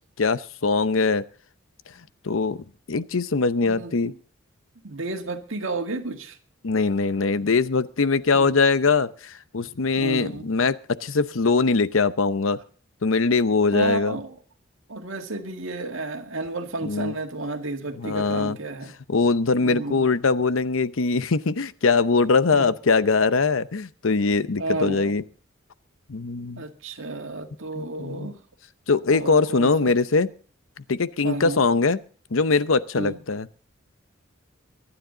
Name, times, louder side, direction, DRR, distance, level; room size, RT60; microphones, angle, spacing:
voice 1, 0.2-1.2 2.2-4.1 6.6-12.6 13.0-14.2 16.8-17.1 18.0-18.6 19.1-25.2 26.1-26.6 27.8-28.3 28.9-30.3 30.9-32.0 32.3-33.5, left 4 dB, 90° left, 0.8 m, -22 dB
voice 2, 3.6-4.0 4.8-6.4 8.3-8.5 10.0-10.5 13.7-14.4 14.9-18.9 19.6-20.1 22.5-22.7 24.6-25.1 26.6-28.4 29.1-30.0 31.2-31.6 32.9-33.2, right 2 dB, 80° right, 1.9 m, -32 dB
24.0 x 10.0 x 3.9 m
head